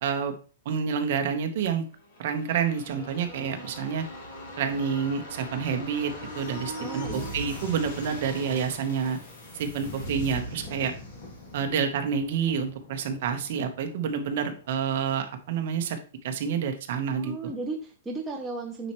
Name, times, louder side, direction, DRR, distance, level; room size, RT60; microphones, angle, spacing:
voice 1, 0.0-0.3 0.6-1.8 2.2-4.0 4.6-9.2 9.5-10.9 11.5-16.0 16.2-17.3, right 7 dB, 40° right, 6 dB, 1.0 m, -28 dB
sound 1, 2.0-15.5 15.8-15.9, equal, 35° left, 1.8 m, -40 dB
voice 2, 6.8-7.3 17.1-18.9, right 3 dB, 5° right, 0 dB, 0.5 m, -35 dB
9.2 x 4.3 x 3.0 m, 0.37 s
hypercardioid pair, 180°, 0 cm